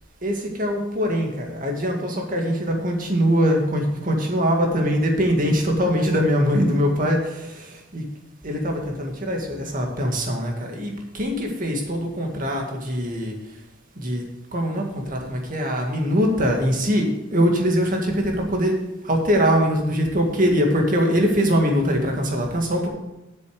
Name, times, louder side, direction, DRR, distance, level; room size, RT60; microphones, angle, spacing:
voice 1, 0.2-8.0 8.4-13.3 14.0-14.2 14.5-18.8 19.0-22.9, equal, 45° right, 2 dB, 1.9 m, -22 dB
8.3 x 6.9 x 6.4 m, 1.0 s
head